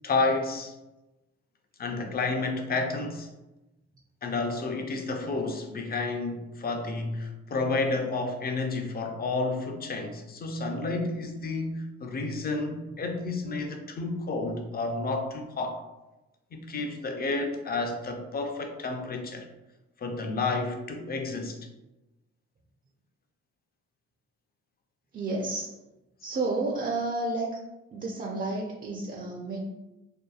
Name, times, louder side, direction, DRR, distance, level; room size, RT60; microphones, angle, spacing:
voice 1, 0.0-0.7 1.8-3.3 4.2-15.8 16.5-19.5 20.0-21.6, left 3 dB, 30° left, 4 dB, 0.4 m, -30 dB
voice 2, 25.1-25.7 26.2-27.5 27.9-29.6, right 2 dB, 30° right, -2 dB, 0.4 m, -31 dB
2.7 x 2.3 x 2.3 m, 1.0 s
cardioid pair, 90°, 30 cm